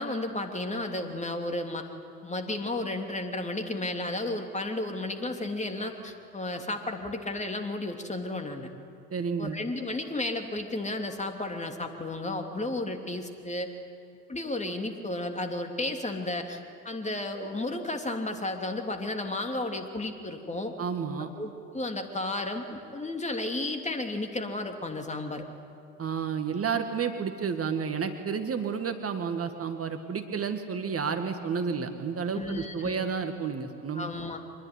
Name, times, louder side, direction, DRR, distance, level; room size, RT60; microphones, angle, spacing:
voice 1, 0.0-1.9 2.2-8.7 9.4-13.7 14.3-20.7 21.2-25.4 32.3-33.1 33.9-34.4, left 2 dB, 15° left, 5 dB, 3.0 m, -33 dB
voice 2, 9.1-9.6 20.8-21.3 26.0-34.1, right 6 dB, 30° right, 6 dB, 2.0 m, -31 dB
25.0 x 21.0 x 9.8 m, 2.5 s
figure-of-eight pair, 70°, 47 cm